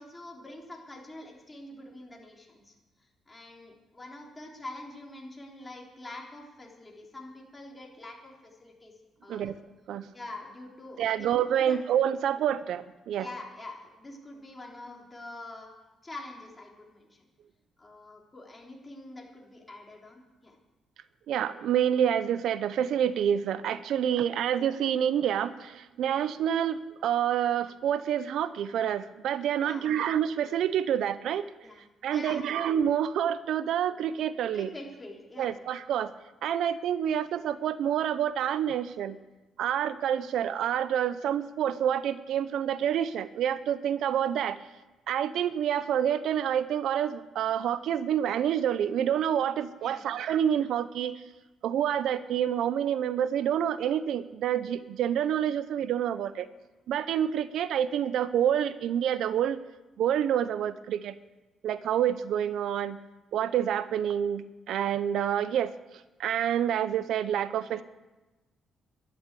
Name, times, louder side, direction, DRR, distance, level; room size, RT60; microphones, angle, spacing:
voice 1, 0.0-2.7 3.3-8.9 9.2-9.5 10.1-11.3 11.6-11.8 13.2-15.7 16.0-17.2 17.8-20.6 29.6-29.9 31.6-32.6 34.5-35.6 49.8-50.1, left 2 dB, 20° left, -1 dB, 3.7 m, -45 dB
voice 2, 11.0-13.3 21.3-31.4 32.0-34.7 35.4-36.1 36.4-39.2 39.6-44.6 45.1-51.2 51.6-56.5 56.9-59.6 60.0-61.2 61.6-63.0 63.3-65.7 66.2-67.8, right 9 dB, 75° right, 14 dB, 0.6 m, -28 dB
12.0 x 10.5 x 8.4 m, 1.1 s
cardioid pair, 90°, 0 cm